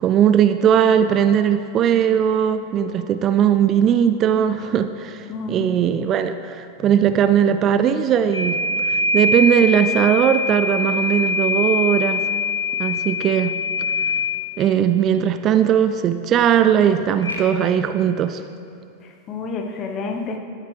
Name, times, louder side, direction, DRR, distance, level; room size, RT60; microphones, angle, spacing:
voice 1, 0.0-12.2 12.8-13.6 14.6-18.4, right 9 dB, 30° right, 10 dB, 0.4 m, -19 dB
voice 2, 5.3-5.7 8.9-9.0 19.0-20.4, left 4 dB, 30° left, 4 dB, 1.1 m, -30 dB
sound 1, 8.3-14.4 17.2-17.4, left 3 dB, 80° left, 1.3 m, -23 dB
13.0 x 10.5 x 3.3 m, 2.6 s
figure-of-eight pair, 90°, 0 cm